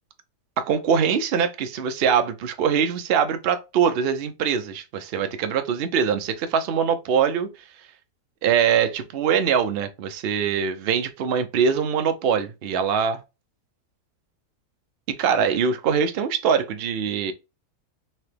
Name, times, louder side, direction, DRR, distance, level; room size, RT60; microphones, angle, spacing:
voice 1, 0.6-7.5 8.4-13.2 15.1-17.3, right 7 dB, 60° right, 0.6 m, -23 dB
4.3 x 2.9 x 3.3 m
omnidirectional pair, 1.6 m